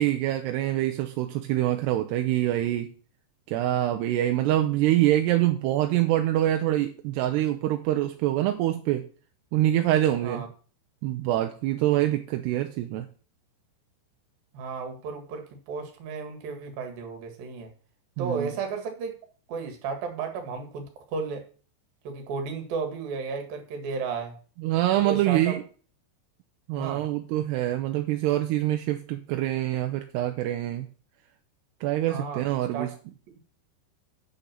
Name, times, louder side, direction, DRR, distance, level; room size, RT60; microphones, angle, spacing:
voice 1, 0.0-2.9 3.5-9.1 9.5-10.4 11.0-13.1 18.2-18.5 24.6-25.6 26.7-30.9 31.8-32.9, right 14 dB, 80° right, 6 dB, 2.6 m, -25 dB
voice 2, 14.5-17.7 18.2-19.1 19.5-21.4 22.0-24.3 25.0-25.6 26.7-27.0 32.1-32.9, right 5 dB, 60° right, 5 dB, 3.2 m, -33 dB
8.1 x 6.6 x 7.4 m, 0.40 s
omnidirectional pair, 5.3 m